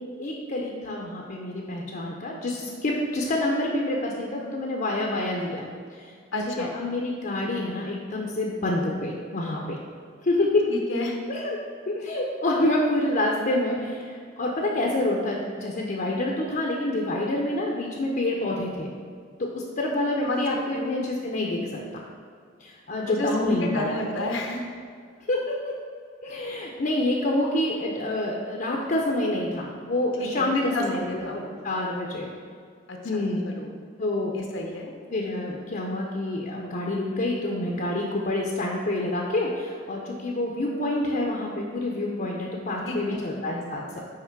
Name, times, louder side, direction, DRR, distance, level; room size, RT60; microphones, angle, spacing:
voice 1, 0.2-5.7 6.6-9.8 10.3-10.6 11.3-11.6 12.0-13.8 14.4-18.9 19.4-19.5 19.8-21.6 22.9-24.0 25.3-25.7 26.2-31.2 31.6-32.3 33.0-33.4 34.0-34.3 35.1-39.5 39.9-44.0, left 1 dB, 45° left, -1 dB, 0.6 m, -27 dB
voice 2, 6.3-6.7 10.7-11.2 20.2-20.9 23.1-24.6 30.2-31.5 32.9-33.0 33.4-33.7 34.3-34.9 42.8-43.2, left 1 dB, 90° left, 1 dB, 0.9 m, -30 dB
5.8 x 4.8 x 4.5 m, 2.1 s
head